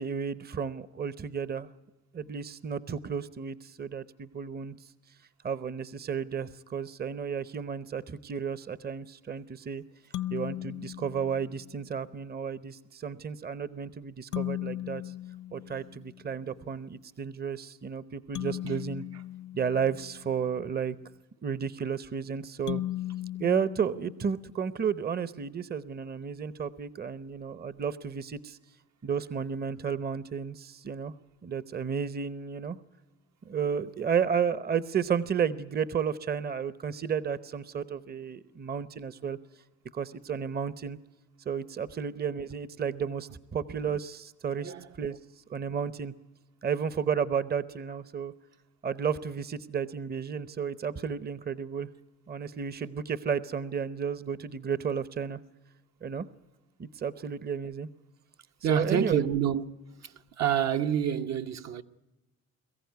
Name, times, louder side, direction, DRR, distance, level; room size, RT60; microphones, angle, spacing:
voice 1, 0.0-1.7 2.1-4.7 5.4-9.8 10.3-15.1 15.5-19.0 19.5-21.0 21.4-22.8 23.4-28.6 29.0-31.1 31.4-32.8 33.4-39.4 39.9-41.0 41.5-45.2 45.5-46.1 46.6-48.3 48.8-51.9 52.3-55.4 56.0-56.2 56.8-57.9 58.7-59.2, right 7 dB, 30° right, 0.8 m, -32 dB
sound 1, 10.1-11.8 14.3-16.3 18.4-20.5 22.7-24.7, left 14 dB, 70° left, 0.7 m, -37 dB
voice 2, 58.6-59.6 60.0-61.8, right 9 dB, 60° right, 1.0 m, -28 dB
22.5 x 15.0 x 9.4 m
cardioid pair, 90°, 30 cm